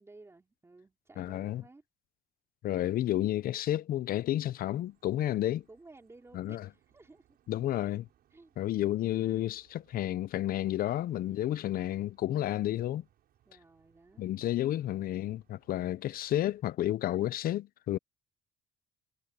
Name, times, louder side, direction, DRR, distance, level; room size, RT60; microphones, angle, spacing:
voice 1, 0.0-1.8 5.7-7.4 8.3-8.5 10.6-11.0 11.3-11.7 12.4-12.8 13.5-14.4 14.6-14.9 15.8-16.2, right 3 dB, 15° right, 4.1 m, -57 dB
voice 2, 1.2-1.6 2.6-5.6 6.3-6.7 7.5-8.1 8.6-13.0 14.2-18.0, left 13 dB, 60° left, 0.6 m, -31 dB
sound 1, 4.7-16.6, right 12 dB, 65° right, 6.1 m, -70 dB
cardioid pair, 110°, 17 cm